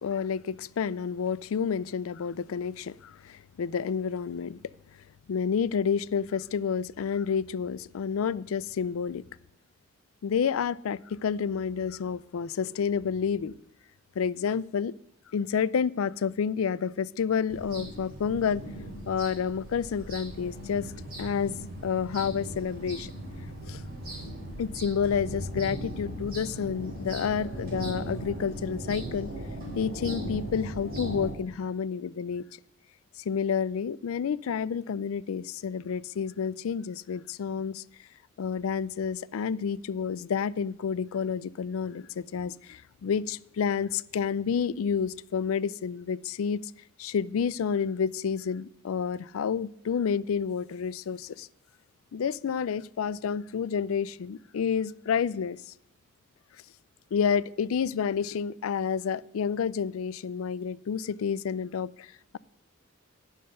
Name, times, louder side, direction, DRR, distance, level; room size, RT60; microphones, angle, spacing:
voice 1, 0.0-4.6 5.3-9.2 10.2-13.5 14.2-14.9 15.3-18.6 19.1-20.9 21.2-21.5 21.8-23.1 23.6-23.8 24.6-29.3 29.8-32.4 33.2-37.8 38.4-46.6 47.0-51.5 52.1-55.7 57.1-62.1, left 6 dB, 90° left, 0.4 m, -29 dB
sound 1, 17.5-31.3, right 1 dB, 45° right, 3.9 m, -38 dB
9.7 x 6.5 x 6.5 m
head